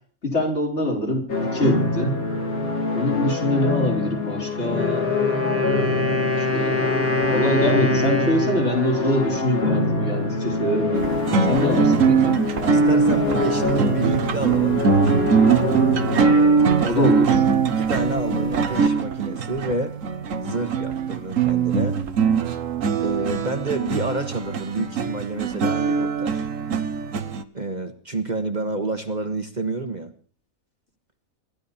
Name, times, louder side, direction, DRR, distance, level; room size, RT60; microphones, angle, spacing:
voice 1, 0.2-2.2 2.9-5.1 6.4-6.8 7.3-11.2 11.5-12.4 16.8-17.3, left 1 dB, 50° left, -1 dB, 4.8 m, -24 dB
sound 1, 1.3-16.4, left 2 dB, 85° left, 3.1 m, -25 dB
Wind instrument woodwind instrument, 4.6-10.4, left 3 dB, 10° right, 1.8 m, -26 dB
sound 2, 10.9-27.4, right 5 dB, 70° right, 1.4 m, -21 dB
voice 2, 12.7-14.8 16.0-17.0 17.7-19.9 20.4-22.0 23.0-26.5 27.5-30.1, right 2 dB, 30° right, 6 dB, 1.5 m, -29 dB
26.5 x 12.0 x 4.3 m, 0.40 s
omnidirectional pair, 1.5 m